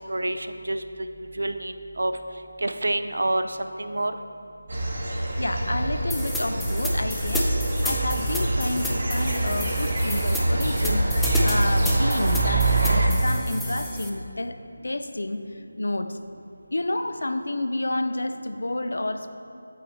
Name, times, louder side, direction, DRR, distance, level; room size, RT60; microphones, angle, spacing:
voice 1, 0.1-0.8 1.4-2.1 2.6-4.1, right 1 dB, 75° right, 9 dB, 0.4 m, -27 dB
sound 1, 4.7-13.1, right 2 dB, 50° right, 0.9 m, -24 dB
voice 2, 5.4-7.5 7.8-14.6 14.8-15.4 15.8-16.2 16.7-19.3, left 1 dB, 75° left, 9 dB, 0.4 m, -29 dB
sound 2, 6.1-14.1, left 1 dB, ahead, 0.3 m, -32 dB
8.3 x 4.0 x 3.1 m, 2.6 s
figure-of-eight pair, 165°, 0 cm